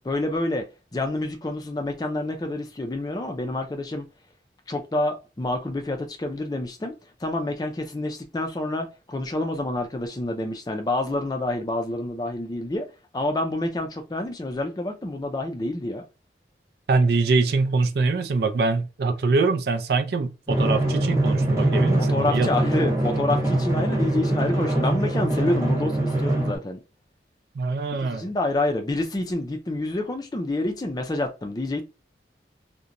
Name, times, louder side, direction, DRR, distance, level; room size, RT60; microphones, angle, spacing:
voice 1, 0.0-4.1 4.7-6.9 7.2-12.9 13.1-16.0 22.0-26.8 28.0-31.8, left 2 dB, 20° left, 0.4 m, -28 dB
voice 2, 16.9-22.5 27.5-28.3, right 3 dB, 65° right, 0.4 m, -23 dB
Drum, 20.5-26.6, right 1 dB, 15° right, 0.7 m, -23 dB
2.8 x 2.1 x 2.5 m
head